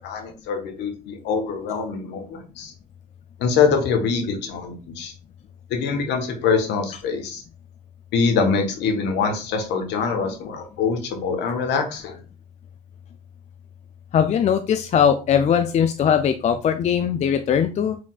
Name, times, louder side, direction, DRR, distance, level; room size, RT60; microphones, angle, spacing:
voice 1, 0.0-2.7 3.4-5.1 5.7-7.4 8.1-12.2, left 5 dB, 60° left, 4 dB, 1.2 m, -24 dB
voice 2, 14.1-18.0, left 8 dB, 35° left, 8 dB, 0.4 m, -20 dB
4.8 x 3.5 x 2.4 m, 0.33 s
hypercardioid pair, 75°, 20 cm